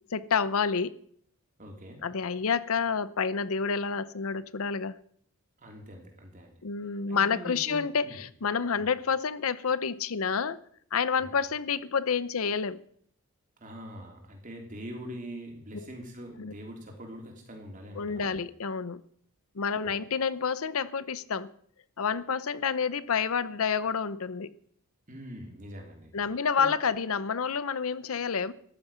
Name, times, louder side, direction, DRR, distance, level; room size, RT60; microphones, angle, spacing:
voice 1, 0.1-1.0 2.0-5.0 6.6-10.6 10.9-12.8 15.7-15.9 16.4-16.5 17.9-19.0 19.5-21.5 22.0-24.5 26.1-28.5, left 6 dB, 70° left, 0.6 m, -29 dB
voice 2, 1.6-2.0 5.6-6.5 7.1-8.2 8.7-8.8 11.2-11.4 13.6-18.4 25.1-26.7, equal, 35° right, 3.3 m, -43 dB
14.0 x 11.0 x 5.6 m
head